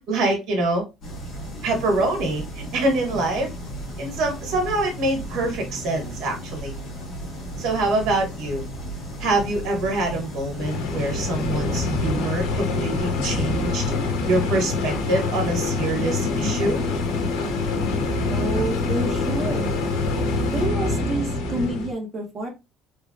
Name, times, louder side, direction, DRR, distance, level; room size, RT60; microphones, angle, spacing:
voice 1, 0.1-0.9 1.6-3.5 4.0-6.7 7.6-8.6 9.2-13.8 14.3-16.8, right 2 dB, 60° right, 2 dB, 1.6 m, -25 dB
sound 1, 1.0-20.7, equal, 35° left, 1.4 m, -35 dB
sound 2, 10.6-21.9, left 3 dB, 90° left, 0.8 m, -25 dB
voice 2, 18.3-19.8 20.5-22.5, right 2 dB, 25° right, 1 dB, 1.2 m, -28 dB
3.3 x 3.2 x 2.4 m, 0.24 s
cardioid pair, 160°, 0 cm